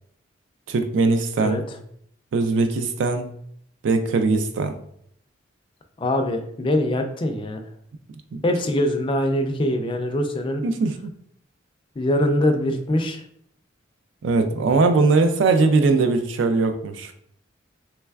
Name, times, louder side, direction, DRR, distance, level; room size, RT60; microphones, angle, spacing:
voice 1, 0.7-1.6 2.3-3.2 3.8-4.7 8.3-8.4 10.6-11.1 14.2-17.1, right 3 dB, 70° right, 7 dB, 0.3 m, -20 dB
voice 2, 6.0-7.6 8.4-10.6 12.0-13.2, left 1 dB, 25° left, 5 dB, 0.3 m, -23 dB
3.3 x 3.1 x 2.3 m, 0.68 s
head